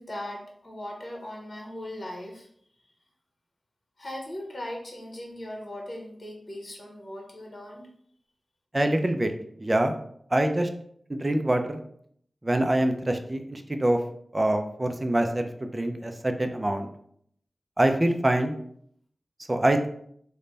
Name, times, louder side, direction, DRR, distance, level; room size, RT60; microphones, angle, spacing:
voice 1, 0.0-2.5 4.0-7.9, left 1 dB, 50° left, -1 dB, 1.0 m, -39 dB
voice 2, 8.7-9.3 9.6-9.9 10.3-10.7 11.1-11.8 12.4-14.0 14.3-16.9 17.8-18.5 19.5-19.9, right 1 dB, 30° right, 6 dB, 0.4 m, -25 dB
3.2 x 2.2 x 3.9 m, 0.66 s
cardioid pair, 50°, 0 cm